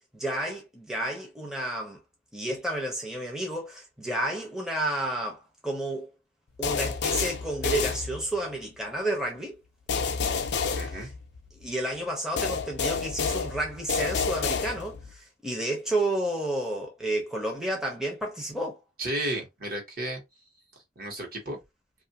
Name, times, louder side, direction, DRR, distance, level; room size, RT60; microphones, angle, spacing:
voice 1, 0.1-2.0 2.3-6.1 6.6-9.6 11.0-11.1 11.6-18.8, right 1 dB, 5° right, 0.6 m, -31 dB
sound 1, 6.6-8.6 9.9-11.6 12.4-15.1, left 5 dB, 70° left, 0.4 m, -29 dB
voice 2, 10.7-11.1 19.0-20.2 21.0-21.6, right 1 dB, 55° right, 1.1 m, -33 dB
2.6 x 2.4 x 2.7 m
head